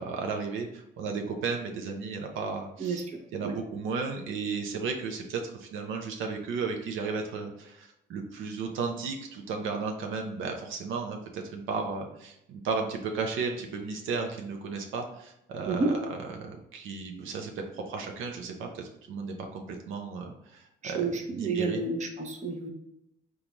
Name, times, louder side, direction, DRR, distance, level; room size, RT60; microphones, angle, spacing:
voice 1, 0.0-3.0 3.3-16.0 16.4-21.8, right 4 dB, 80° right, 2 dB, 0.6 m, -34 dB
voice 2, 2.8-3.5 15.7-15.9 20.8-22.7, right 3 dB, 35° right, 3 dB, 0.7 m, -30 dB
3.8 x 2.3 x 3.0 m, 0.79 s
cardioid pair, 90°, 20 cm